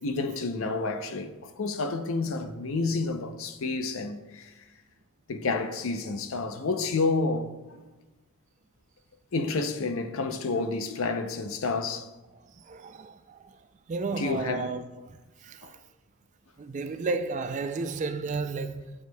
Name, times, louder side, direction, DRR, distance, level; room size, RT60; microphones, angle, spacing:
voice 1, 0.0-4.5 5.3-7.8 9.3-12.1 14.1-14.7 15.6-15.7, left 3 dB, 65° left, 0.5 m, -30 dB
voice 2, 12.7-13.4 13.9-14.8 15.1-15.2 15.5-15.6 16.6-18.9, right 4 dB, 35° right, 0.3 m, -32 dB
9.4 x 6.4 x 2.2 m
head